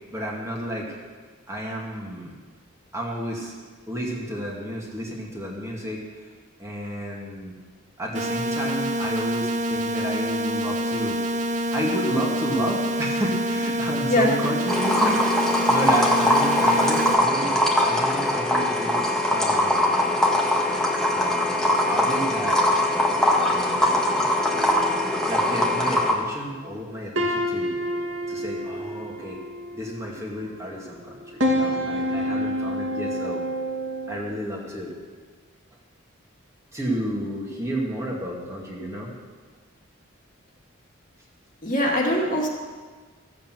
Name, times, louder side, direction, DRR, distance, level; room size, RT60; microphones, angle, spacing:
voice 1, 0.1-0.9 1.5-2.3 2.9-3.5 3.9-6.3 6.6-7.6 8.0-20.0 21.1-22.6 23.5-23.9 25.2-27.7 28.3-29.4 29.7-33.4 34.1-34.9 36.7-39.1, right 1 dB, 15° right, -3 dB, 2.2 m, -31 dB
sound 1, 8.1-17.1, equal, 35° right, 0.7 m, -26 dB
sound 2, 14.7-26.1, left 1 dB, 5° left, 1.6 m, -21 dB
sound 3, 24.4-26.2 26.7-26.8 27.2-30.4 31.0-34.2, equal, 65° right, 2.2 m, -29 dB
voice 2, 41.6-42.5, left 1 dB, 40° left, -2 dB, 2.2 m, -21 dB
14.5 x 8.4 x 7.6 m, 1.5 s
head